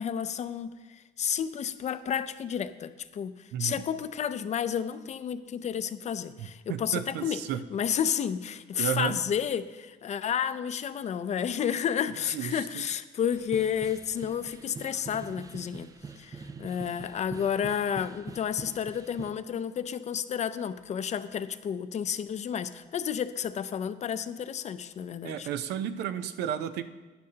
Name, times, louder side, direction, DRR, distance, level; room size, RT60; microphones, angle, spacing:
voice 1, 0.0-7.4 7.7-15.9 16.2-25.5, left 8 dB, 40° left, 12 dB, 0.5 m, -31 dB
voice 2, 3.5-3.8 6.4-7.6 8.8-9.2 12.3-12.6 25.2-26.8, right 9 dB, 80° right, 11 dB, 0.6 m, -32 dB
sound 1, 13.3-19.3, right 4 dB, 20° right, 0.4 m, -44 dB
13.0 x 10.5 x 2.8 m, 1.3 s
cardioid pair, 110°, 17 cm